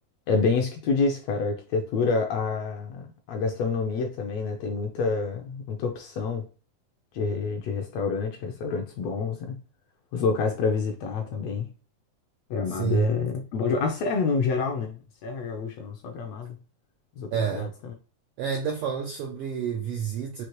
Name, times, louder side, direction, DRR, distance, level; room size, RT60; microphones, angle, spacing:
voice 1, 0.3-6.4 7.1-9.6 10.1-11.7 12.5-16.6 17.2-17.9, left 4 dB, 75° left, 1.6 m, -28 dB
voice 2, 12.7-13.1 17.3-17.7 18.4-20.4, right 8 dB, 80° right, 1.3 m, -29 dB
6.0 x 2.8 x 3.0 m
omnidirectional pair, 3.5 m